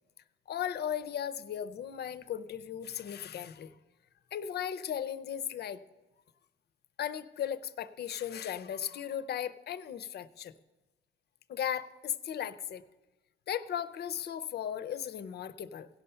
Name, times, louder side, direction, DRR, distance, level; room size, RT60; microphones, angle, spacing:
voice 1, 0.5-3.7 4.3-5.8 7.0-10.5 11.5-12.8 13.5-15.9, left 9 dB, 55° left, 15 dB, 0.6 m, -36 dB
16.5 x 5.6 x 5.5 m, 1.1 s
cardioid pair, 90°, 20 cm